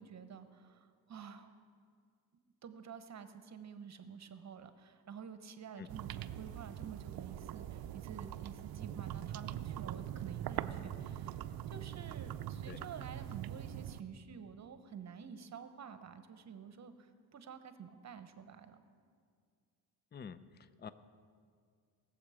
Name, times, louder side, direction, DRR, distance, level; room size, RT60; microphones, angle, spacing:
voice 1, 0.0-1.5 2.6-11.4 11.7-18.8, right 7 dB, 40° right, 10 dB, 1.0 m, -50 dB
sound 1, 5.9-14.0, right 12 dB, 55° right, 0.6 m, -42 dB
voice 2, 20.1-20.9, left 6 dB, 25° left, 14 dB, 0.5 m, -48 dB
19.5 x 7.4 x 4.9 m, 2.1 s
supercardioid pair, 85°, 43 cm